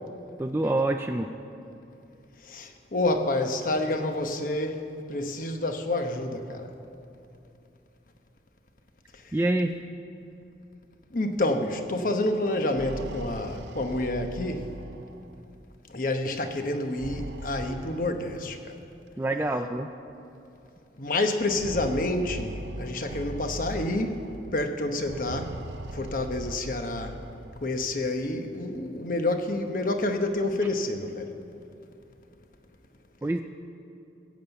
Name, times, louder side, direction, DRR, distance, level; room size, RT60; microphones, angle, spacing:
voice 1, 0.4-1.3 9.3-9.8 19.2-19.9 33.2-33.4, right 2 dB, 15° right, 0.3 m, -26 dB
voice 2, 2.5-4.8 5.1-6.7 11.1-14.7 15.9-18.7 21.0-24.2 24.5-25.5 25.9-27.1 27.6-31.3, left 2 dB, 50° left, 1.0 m, -28 dB
sound 1, 12.6-15.4 16.8-18.5 19.5-19.6 19.9-20.0 21.3-24.4 25.0-27.6, right 2 dB, 85° right, 0.7 m, -39 dB
15.5 x 7.2 x 8.1 m
head